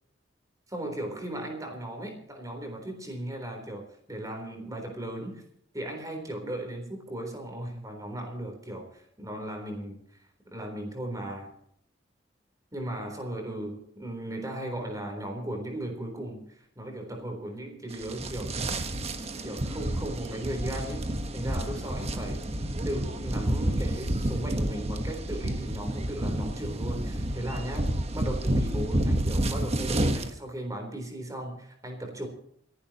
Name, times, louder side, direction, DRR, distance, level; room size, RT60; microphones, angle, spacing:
voice 1, 0.7-5.4 5.7-11.5 12.7-18.6 19.4-22.4 22.8-32.3, right 1 dB, 20° right, 3 dB, 3.7 m, -37 dB
sound 1, 17.9-30.3, right 1 dB, 35° right, 1.3 m, -30 dB
28.5 x 11.0 x 3.0 m, 0.72 s
head